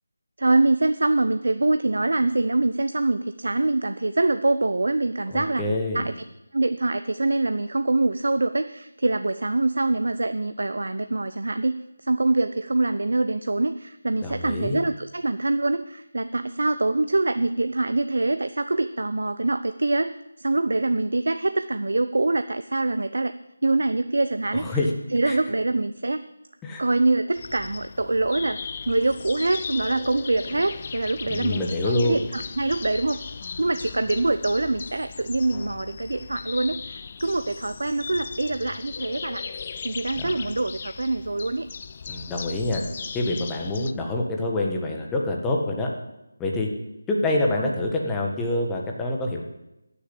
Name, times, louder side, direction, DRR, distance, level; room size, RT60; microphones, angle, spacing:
voice 1, 0.4-5.6 5.9-6.1 6.5-23.3 23.6-24.8 25.1-26.3 26.8-28.6 28.9-33.2 33.6-39.4 39.8-41.7 47.6-47.7, right 2 dB, 75° right, 10 dB, 0.6 m, -24 dB
voice 2, 5.3-6.1 14.2-14.8 24.5-24.9 25.3-25.4 26.6-26.8 31.3-32.2 40.2-40.4 42.1-42.8 43.1-45.9 46.4-46.7 47.1-49.4, left 2 dB, 10° left, 0 dB, 1.4 m, -26 dB
sound 1, 27.4-43.9, left 6 dB, 35° left, 0.4 m, -37 dB
13.5 x 7.0 x 8.5 m, 0.94 s
figure-of-eight pair, 165°, 0 cm